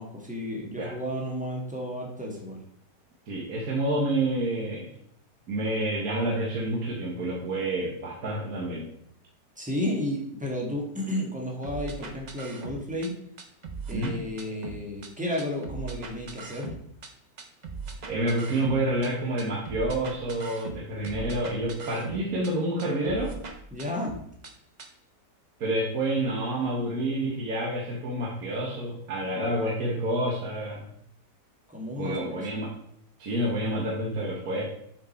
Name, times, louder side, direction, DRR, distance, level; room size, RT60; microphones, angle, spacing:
voice 1, 0.0-2.6 9.6-13.1 13.9-16.7 23.7-24.1 31.7-32.4, left 1 dB, 5° right, -1 dB, 1.5 m, -32 dB
voice 2, 3.3-4.9 5.5-8.9 13.9-14.2 18.1-23.3 25.6-30.8 32.0-32.7 33.2-34.6, right 1 dB, 60° right, -2 dB, 1.7 m, -28 dB
sound 1, 11.6-13.1 13.4-15.1 15.4-17.1 17.4-19.1 19.4-22.5 22.8-24.5 24.8-24.9, right 4 dB, 40° right, 0.6 m, -39 dB
7.3 x 6.0 x 4.3 m, 0.69 s
omnidirectional pair, 1.9 m